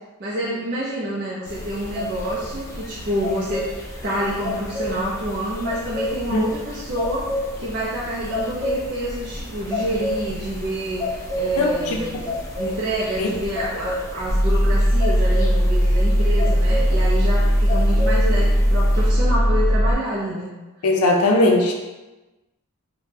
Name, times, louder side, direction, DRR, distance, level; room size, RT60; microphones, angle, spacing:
voice 1, 0.2-3.7 4.0-7.3 7.6-12.2 12.6-20.5, right 1 dB, 45° right, -7 dB, 0.5 m, -27 dB
sound 1, 1.5-19.1, left 1 dB, 15° left, 0.3 m, -31 dB
voice 2, 11.6-12.0 12.6-12.8 13.2-13.3 20.8-21.7, left 2 dB, 85° left, 0 dB, 0.4 m, -19 dB
sound 2, 14.3-19.9, equal, 45° left, 0.8 m, -18 dB
3.4 x 2.1 x 2.7 m, 1.1 s
head